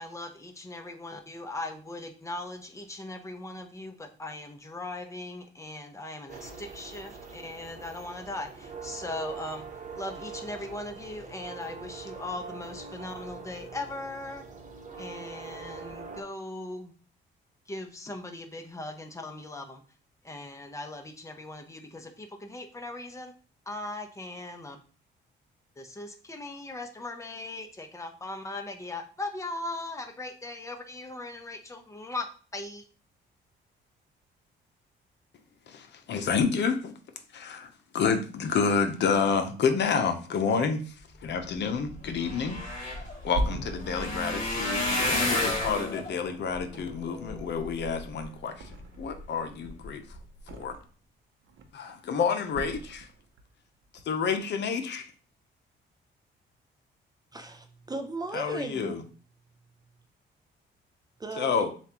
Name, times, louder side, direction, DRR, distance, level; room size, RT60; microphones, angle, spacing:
voice 1, 0.0-9.7 10.0-14.4 15.0-16.9 17.7-19.8 20.2-23.3 23.7-24.8 25.8-32.8, left 2 dB, 15° left, 5 dB, 0.9 m, -39 dB
sound 1, 6.3-16.2, right 5 dB, 40° right, 1.0 m, -43 dB
voice 2, 35.7-36.9 37.3-40.9 41.2-42.6 43.2-48.7 49.0-50.0 50.5-50.8 51.7-53.1 54.1-55.1 58.3-59.0 61.4-61.7, left 5 dB, 60° left, 6 dB, 0.8 m, -29 dB
sound 2, 41.9-48.2 48.8-49.2 49.7-49.9 50.1-50.2, left 1 dB, 35° left, 2.1 m, -32 dB
Thump thud, 42.9-46.2 46.6-47.4 47.7-49.2 49.5-51.0 51.4-51.9 52.5-53.5 53.8-54.0, right 1 dB, 70° right, 0.8 m, -38 dB
voice 3, 57.3-58.9 61.2-61.7, right 2 dB, 20° right, 6 dB, 0.5 m, -36 dB
7.0 x 2.5 x 3.0 m, 0.39 s
cardioid pair, 90°, 20 cm